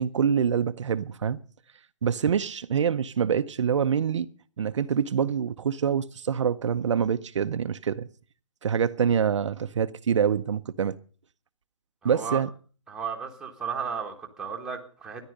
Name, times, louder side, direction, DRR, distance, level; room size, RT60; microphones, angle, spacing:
voice 1, 0.0-1.4 2.0-4.3 4.6-8.1 8.6-11.0 12.0-12.5, right 7 dB, 60° right, 0.7 m, -25 dB
voice 2, 12.0-12.4 12.9-15.2, right 6 dB, 5° right, 1.4 m, -34 dB
13.5 x 10.5 x 6.4 m
hypercardioid pair, 160°, 17 cm